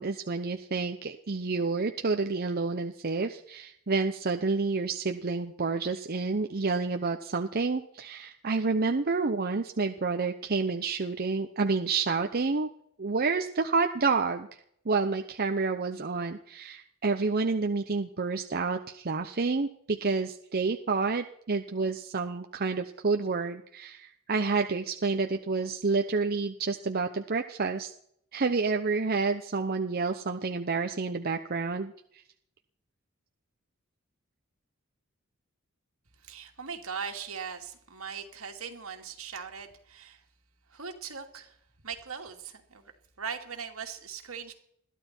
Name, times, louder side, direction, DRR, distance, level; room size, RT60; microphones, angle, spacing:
voice 1, 0.0-12.7 13.0-14.6 14.8-27.9 28.3-31.9, right 4 dB, 45° right, 5 dB, 0.8 m, -29 dB
voice 2, 36.2-40.2 40.7-41.6 41.8-42.9 43.2-44.5, right 6 dB, 75° right, 3 dB, 2.5 m, -40 dB
21.5 x 14.0 x 4.5 m, 0.70 s
head